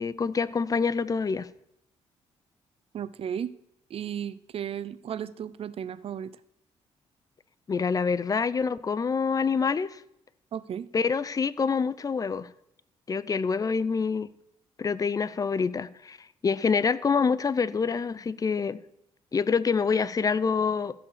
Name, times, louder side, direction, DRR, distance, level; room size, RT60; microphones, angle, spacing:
voice 1, 0.0-1.5 7.7-10.0 10.9-12.5 13.1-14.3 14.8-16.2 16.4-18.8 19.3-20.9, left 5 dB, 30° left, 17 dB, 0.6 m, -26 dB
voice 2, 2.9-3.5 3.9-6.4 10.5-10.9, right 9 dB, 55° right, 17 dB, 0.6 m, -34 dB
14.5 x 4.9 x 6.7 m, 0.79 s
cardioid pair, 85°, 12 cm